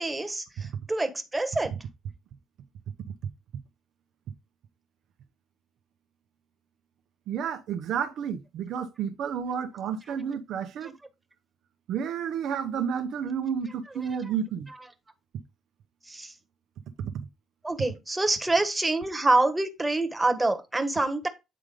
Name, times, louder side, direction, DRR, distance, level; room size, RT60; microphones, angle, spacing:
voice 1, 0.0-1.7 10.8-10.9 16.0-16.3 17.6-21.3, right 2 dB, 10° right, 1.4 m, -26 dB
voice 2, 7.3-11.0 11.9-14.7, right 7 dB, 70° right, 0.9 m, -31 dB
8.7 x 3.8 x 4.9 m
cardioid pair, 95°, 0 cm